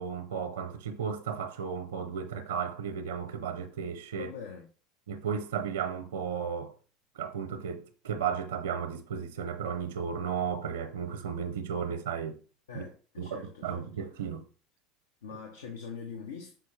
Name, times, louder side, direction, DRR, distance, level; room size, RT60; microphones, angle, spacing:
voice 1, 0.0-4.3 5.1-6.7 7.1-12.4 12.7-12.8 13.2-14.5, right 7 dB, 85° right, 0.6 m, -34 dB
voice 2, 4.2-4.7 12.7-13.9 15.2-16.6, left 6 dB, 85° left, 0.9 m, -43 dB
6.0 x 5.1 x 3.2 m
hypercardioid pair, 90°, 0 cm